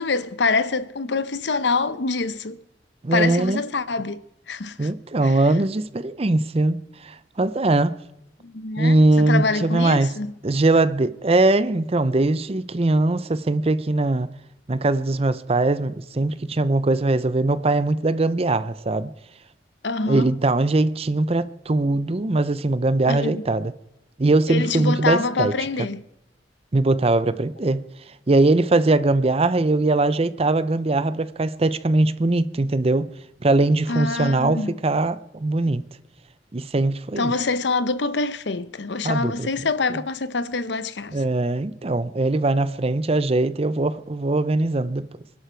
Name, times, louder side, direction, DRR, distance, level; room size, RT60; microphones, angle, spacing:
voice 1, 0.0-2.6 3.1-4.9 5.2-5.4 8.4-10.3 19.8-20.3 23.1-23.5 24.5-26.0 33.9-34.8 37.2-41.2, left 3 dB, 70° left, 0.8 m, -25 dB
voice 2, 3.0-3.6 4.8-8.0 8.8-10.1 10.4-14.3 14.7-19.1 20.1-23.7 24.2-25.5 26.7-27.8 28.3-33.1 33.4-35.8 36.5-37.3 39.0-39.5 41.1-45.1, right 2 dB, 35° right, 0.6 m, -21 dB
25.0 x 11.5 x 4.5 m
head